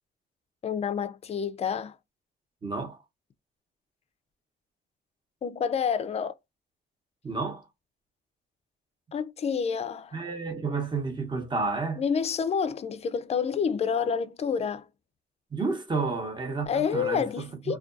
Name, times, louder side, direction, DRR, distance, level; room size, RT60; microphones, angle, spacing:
voice 1, 0.6-2.0 5.4-6.3 9.1-10.2 12.0-14.9 16.7-17.8, left 6 dB, 30° left, 0.4 m, -28 dB
voice 2, 2.6-3.0 7.2-7.7 10.1-12.0 15.5-17.3 17.7-17.8, right 4 dB, 25° right, 0.8 m, -31 dB
2.4 x 2.2 x 2.4 m
cardioid pair, 90°, 20 cm